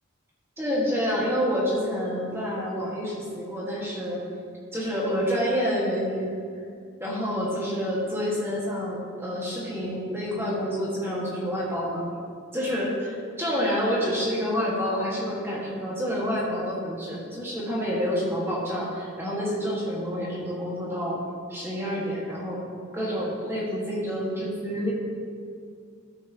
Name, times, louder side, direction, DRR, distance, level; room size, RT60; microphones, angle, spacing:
voice 1, 0.6-4.2 4.7-6.3 7.0-12.0 12.5-21.2 21.5-22.6 22.9-24.9, equal, 10° right, -6 dB, 1.5 m, -28 dB
13.0 x 6.6 x 2.8 m, 2.3 s
head